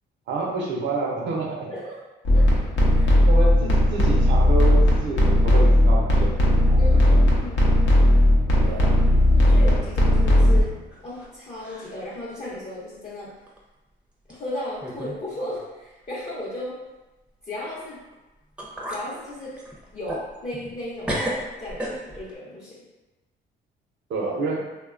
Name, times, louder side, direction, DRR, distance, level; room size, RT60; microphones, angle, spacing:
voice 1, 0.3-1.7 3.3-7.2 8.6-8.9 24.1-24.7, right 3 dB, 70° right, -2 dB, 0.6 m, -29 dB
voice 2, 1.7-2.0 2.3-3.2 6.8-7.6 8.6-8.8 9.4-10.8 11.0-13.3 14.3-16.8 17.4-18.0 18.9-19.5 19.9-22.8, left 1 dB, 35° left, -8 dB, 0.7 m, -35 dB
sound 1, 2.2-10.6, left 1 dB, 75° left, 0.7 m, -17 dB
sound 2, 10.5-11.3 11.6-12.1 12.5-12.6 13.5-13.6 14.3-14.4 14.8-15.2 15.5-15.6 18.1-18.2 18.6-19.1 19.5-20.8 21.0-22.3, equal, 5° right, 0.5 m, -33 dB
2.9 x 2.2 x 2.4 m, 1.1 s
cardioid pair, 90°, 20 cm